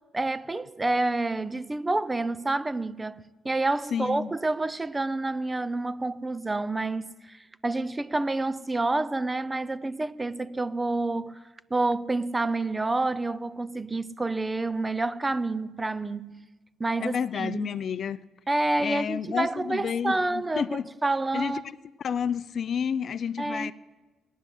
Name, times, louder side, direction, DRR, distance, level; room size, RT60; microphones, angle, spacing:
voice 1, 0.1-11.4 11.7-16.4 16.8-17.7 18.5-21.6 23.4-23.7, right 2 dB, 20° right, 0.6 m, -28 dB
voice 2, 3.9-4.3 17.0-18.2 18.8-20.9 21.3-21.5 22.0-23.7, left 7 dB, 55° left, 0.5 m, -30 dB
18.0 x 10.0 x 8.0 m
cardioid pair, 90°, 0 cm